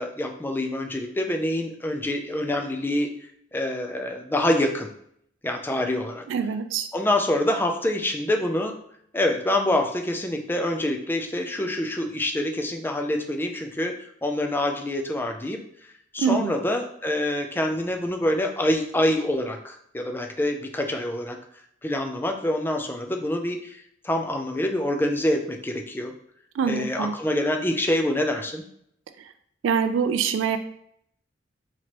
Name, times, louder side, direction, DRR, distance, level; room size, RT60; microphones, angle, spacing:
voice 1, 0.0-3.1 3.5-4.9 5.4-6.2 6.9-8.7 9.1-13.9 14.2-15.6 16.1-21.4 21.8-26.1 26.6-28.6, left 1 dB, 10° left, 3 dB, 0.4 m, -26 dB
voice 2, 6.3-6.9 16.2-16.5 26.6-27.1 29.6-30.6, right 6 dB, 80° right, 9 dB, 0.3 m, -24 dB
4.4 x 2.9 x 2.9 m, 0.70 s
head